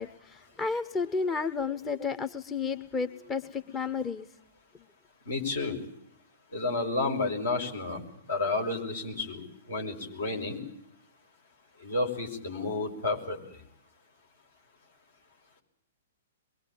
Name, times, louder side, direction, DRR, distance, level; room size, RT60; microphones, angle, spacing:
voice 1, 0.0-4.3, left 5 dB, 15° left, 10 dB, 1.0 m, -32 dB
voice 2, 5.3-5.8 6.5-8.0 8.3-10.6 11.8-13.4, left 3 dB, 65° left, 2 dB, 6.1 m, -31 dB
24.0 x 23.0 x 8.8 m, 0.72 s
figure-of-eight pair, 110°, 0 cm